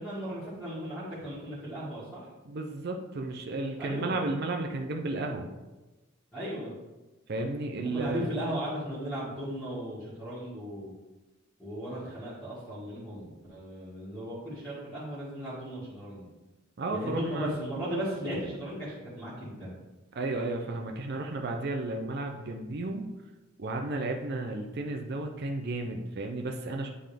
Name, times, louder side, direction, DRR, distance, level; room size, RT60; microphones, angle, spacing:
voice 1, 0.0-2.3 3.8-4.1 6.3-6.7 7.8-10.9 11.6-16.3 16.9-19.7, equal, 5° left, -12 dB, 2.0 m, -36 dB
voice 2, 2.4-5.5 7.3-8.2 16.8-17.5 20.1-23.1 23.6-26.9, right 2 dB, 50° right, 3 dB, 0.6 m, -33 dB
9.6 x 3.8 x 3.4 m, 1.1 s
head